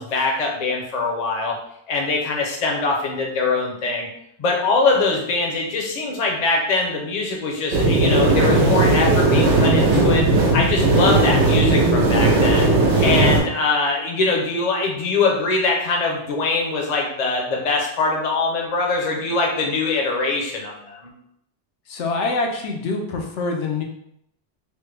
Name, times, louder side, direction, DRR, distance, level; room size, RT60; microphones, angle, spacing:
voice 1, 0.0-1.6 1.9-4.1 4.4-10.3 10.5-12.7 13.0-21.1, left 3 dB, 45° left, 0 dB, 0.6 m, -22 dB
sound 1, 7.7-13.4, right 2 dB, 75° right, 1.0 m, -17 dB
voice 2, 21.9-23.8, left 3 dB, 85° left, 1 dB, 0.9 m, -25 dB
3.2 x 2.1 x 3.2 m, 0.74 s
omnidirectional pair, 1.2 m